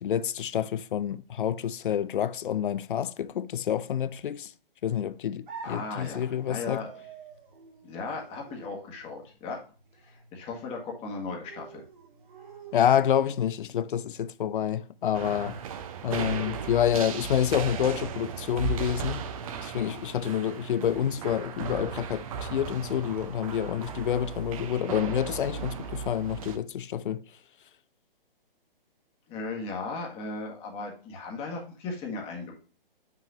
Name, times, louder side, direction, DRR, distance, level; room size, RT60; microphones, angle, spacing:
voice 1, 0.0-4.5 4.8-6.8 12.7-15.6 16.0-19.2 19.6-27.2, left 9 dB, 60° left, 0.5 m, -28 dB
sound 1, 5.5-13.4, right 5 dB, 55° right, 2.3 m, -49 dB
voice 2, 5.6-6.9 7.8-9.6 10.0-11.8 29.3-32.6, left 3 dB, 20° left, 1.6 m, -36 dB
sound 2, 15.1-26.6, right 6 dB, 35° right, 0.8 m, -36 dB
7.1 x 5.9 x 2.6 m
hypercardioid pair, 140°, 29 cm